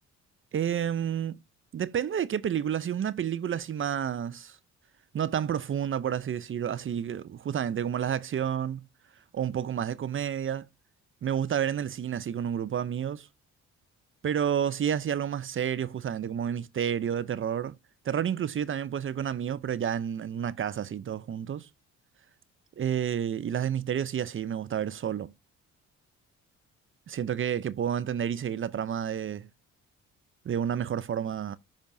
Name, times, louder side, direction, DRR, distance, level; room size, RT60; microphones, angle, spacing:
voice 1, 0.5-1.4 1.7-4.6 5.1-8.8 9.3-10.7 11.2-13.3 14.2-17.8 18.0-21.7 22.8-25.3 27.1-29.5 30.5-31.6, right 9 dB, 45° right, 0.6 m, -30 dB
10.0 x 5.2 x 2.6 m
cardioid pair, 90°, 30 cm